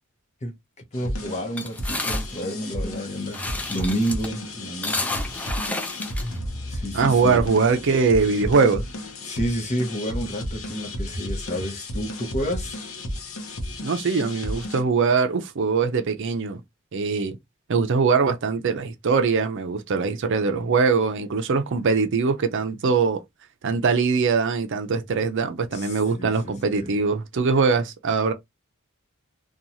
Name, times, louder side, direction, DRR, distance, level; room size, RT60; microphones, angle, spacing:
sound 1, 0.9-14.8, left 1 dB, 85° left, 0.8 m, -33 dB
voice 1, 0.9-5.2 6.7-7.4 9.2-12.9 25.7-26.9, equal, 35° left, 0.8 m, -30 dB
sound 2, 1.6-6.9, left 2 dB, 5° left, 0.4 m, -31 dB
voice 2, 6.9-8.8 13.8-16.6 16.9-17.4 17.7-23.2 23.6-28.3, right 4 dB, 60° right, 0.5 m, -22 dB
2.9 x 2.3 x 2.6 m
head